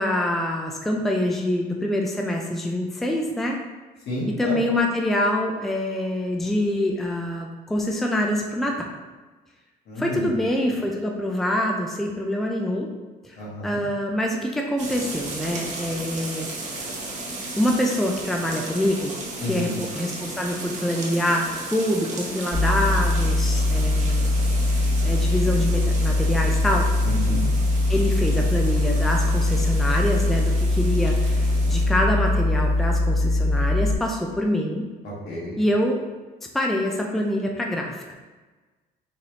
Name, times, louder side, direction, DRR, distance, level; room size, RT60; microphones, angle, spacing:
voice 1, 0.0-3.6 4.4-8.9 10.0-12.9 13.2-13.4 13.6-16.5 17.6-19.1 19.4-24.2 25.0-26.9 27.9-34.9 35.6-36.0 36.5-38.1, left 1 dB, ahead, 1 dB, 0.4 m, -25 dB
voice 2, 4.0-4.6 9.9-10.3 10.6-10.8 13.4-13.8 19.4-19.7 27.0-27.4 35.0-35.6, left 1 dB, 70° left, -5 dB, 1.5 m, -31 dB
sound 1, 14.8-31.9, right 2 dB, 45° right, 0.8 m, -35 dB
sound 2, 22.5-33.9, left 2 dB, 80° right, 1.2 m, -21 dB
4.0 x 3.2 x 2.8 m, 1.3 s
cardioid pair, 110°, 17 cm